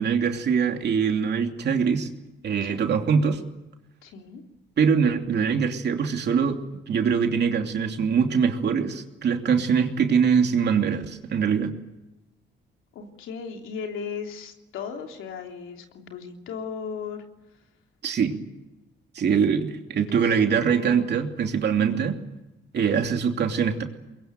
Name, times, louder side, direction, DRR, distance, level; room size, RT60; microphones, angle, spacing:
voice 1, 0.0-2.1 2.4-3.4 4.8-6.6 6.9-11.7 18.0-18.4 19.1-22.2 22.7-23.8, right 6 dB, 60° right, 4 dB, 2.9 m, -23 dB
voice 2, 4.0-4.4 12.9-17.2 20.1-21.1 21.7-22.0 22.9-23.0, left 6 dB, 85° left, 3 dB, 3.3 m, -37 dB
23.0 x 22.0 x 9.2 m, 1.0 s
cardioid pair, 90°, 20 cm